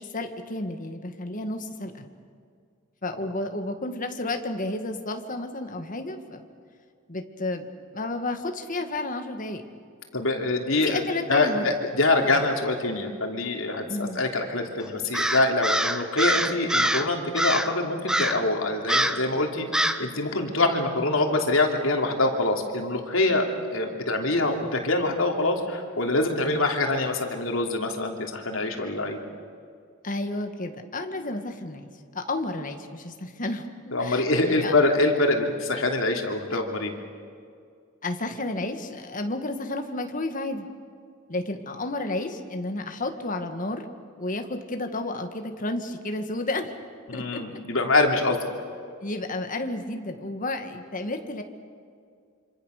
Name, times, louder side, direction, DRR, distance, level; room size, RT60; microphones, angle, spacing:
voice 1, 0.0-2.1 3.0-6.4 7.1-7.7 7.9-9.6 10.8-11.7 13.9-14.2 30.0-34.7 36.5-36.6 38.0-40.7 41.3-43.9 44.2-46.7 47.1-47.4 49.0-51.4, left 2 dB, 40° left, 6 dB, 1.8 m, -31 dB
voice 2, 10.1-11.0 11.3-29.2 33.9-36.9 47.1-48.5, left 2 dB, 85° left, 2 dB, 3.1 m, -25 dB
Crow, 15.1-17.1 17.4-17.7 18.1-18.5 18.9-19.3 19.7-20.1, right 1 dB, 5° right, 0.9 m, -24 dB
26.5 x 26.0 x 6.6 m, 2.2 s
head